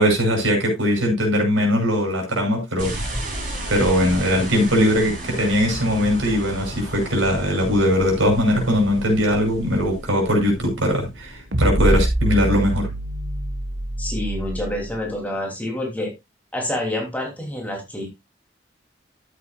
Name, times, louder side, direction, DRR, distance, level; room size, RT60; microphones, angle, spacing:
voice 1, 0.0-2.9 3.7-12.9, equal, 90° right, 6.0 m, -20 dB
sound 1, 2.8-12.2, right 1 dB, 40° right, 4.5 m, -33 dB
sound 2, 11.5-14.9, right 1 dB, 70° right, 1.5 m, -24 dB
voice 2, 14.0-16.1 16.5-18.1, left 1 dB, 10° left, 3.0 m, -27 dB
13.0 x 8.5 x 2.4 m
head